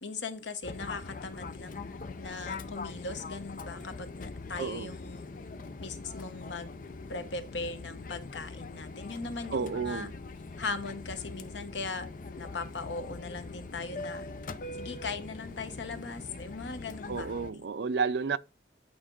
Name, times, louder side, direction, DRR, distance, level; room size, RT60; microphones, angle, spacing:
voice 1, 0.0-5.3 5.8-6.8 7.1-10.1 10.6-12.1 12.4-14.3 14.7-17.6, left 3 dB, 90° left, 1.0 m, -39 dB
Fixed-wing aircraft airplane, 0.6-17.5, left 3 dB, 45° left, 0.5 m, -42 dB
voice 2, 4.6-4.9 9.5-10.1 17.1-18.4, right 5 dB, 75° right, 0.5 m, -31 dB
8.7 x 5.1 x 3.8 m
head